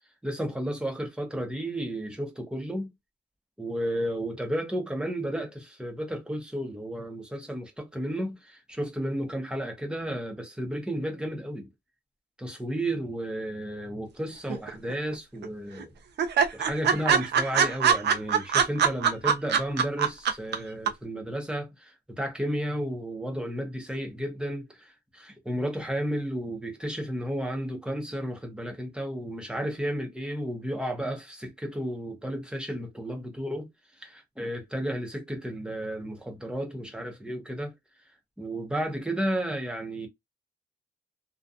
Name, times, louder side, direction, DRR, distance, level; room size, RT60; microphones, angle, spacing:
voice 1, 0.2-2.9 3.6-11.7 12.4-15.9 16.5-33.7 34.0-37.7 38.4-40.1, equal, 5° right, 0.6 m, -33 dB
sound 1, 14.5-15.1 15.4-15.5 15.8-15.9 16.2-20.6 20.9-21.0, right 7 dB, 75° right, 0.5 m, -22 dB
2.6 x 2.2 x 2.3 m
wide cardioid pair, 175°, 18 cm